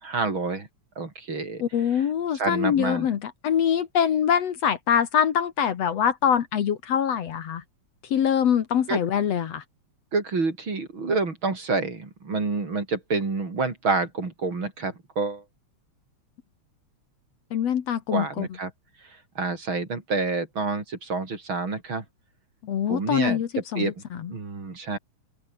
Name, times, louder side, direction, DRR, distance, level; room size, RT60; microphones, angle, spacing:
voice 1, 0.0-0.7 1.0-1.6 2.3-3.1 8.9-9.0 10.1-15.4 18.1-18.7 19.4-22.0 22.9-23.4 23.8-23.9 24.3-25.0, right 3 dB, 40° right, 4.6 m, -28 dB
voice 2, 1.6-7.6 8.1-9.6 17.5-18.5 22.6-24.3, left 8 dB, 60° left, 2.5 m, -24 dB
open air
omnidirectional pair, 3.3 m